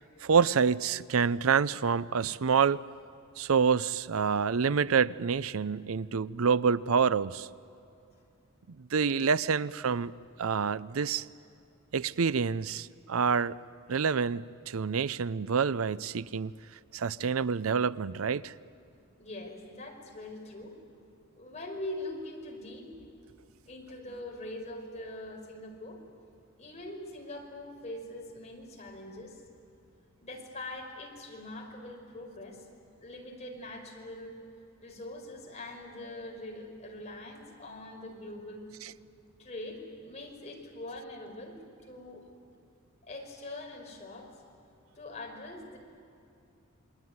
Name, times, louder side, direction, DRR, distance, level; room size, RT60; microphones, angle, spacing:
voice 1, 0.2-2.8 3.4-7.5 8.9-10.1 10.4-11.3 11.9-13.6 13.9-16.5 16.9-18.5, right 6 dB, 85° right, 0.6 m, -27 dB
voice 2, 19.2-20.7 21.4-22.9 23.7-26.0 26.6-29.4 30.2-32.6 33.0-34.3 34.8-38.7 39.4-42.3 43.0-44.3 44.9-45.8, left 1 dB, 35° left, 5.0 m, -43 dB
28.0 x 22.0 x 9.5 m
head